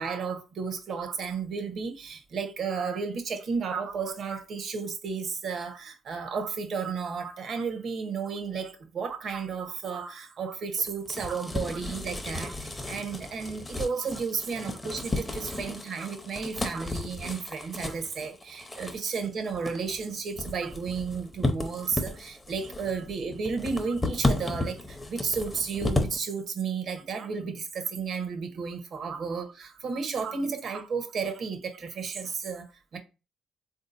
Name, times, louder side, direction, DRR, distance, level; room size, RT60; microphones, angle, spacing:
voice 1, 0.0-33.0, right 5 dB, 60° right, 0.8 m, -33 dB
sound 1, 10.7-26.2, left 2 dB, 15° left, 0.6 m, -33 dB
3.6 x 2.7 x 2.5 m
cardioid pair, 90°, 0 cm